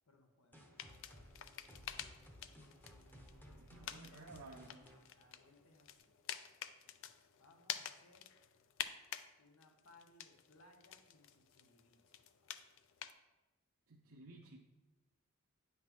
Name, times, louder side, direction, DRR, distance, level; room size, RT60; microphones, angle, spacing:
voice 1, 0.0-1.3 2.6-2.9 3.8-4.5 5.2-6.2 7.4-8.3 9.4-12.6, left 2 dB, 85° left, 3 dB, 1.1 m, -67 dB
sound 1, 0.5-6.0, equal, 10° left, 0.8 m, -59 dB
sound 2, 0.8-9.3 9.6-13.1, left 10 dB, 65° left, 0.4 m, -49 dB
voice 2, 3.5-4.9 13.9-14.6, right 2 dB, 70° right, -1 dB, 0.6 m, -55 dB
9.0 x 5.8 x 3.1 m, 1.2 s
head